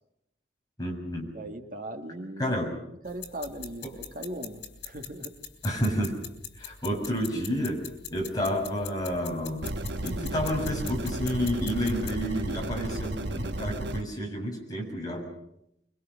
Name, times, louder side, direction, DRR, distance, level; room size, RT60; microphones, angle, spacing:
voice 1, 0.8-1.3 2.4-2.7 3.8-3.9 5.6-6.1 6.6-9.7 10.0-15.2, equal, 20° left, -1 dB, 6.8 m, -30 dB
voice 2, 1.3-2.6 3.0-5.4, right 1 dB, 45° right, 4 dB, 2.0 m, -39 dB
sound 1, 3.1-12.1, left 8 dB, 75° left, 4.2 m, -43 dB
sound 2, 9.6-14.0, right 1 dB, 65° right, 1.1 m, -33 dB
25.5 x 23.0 x 6.4 m, 0.79 s
head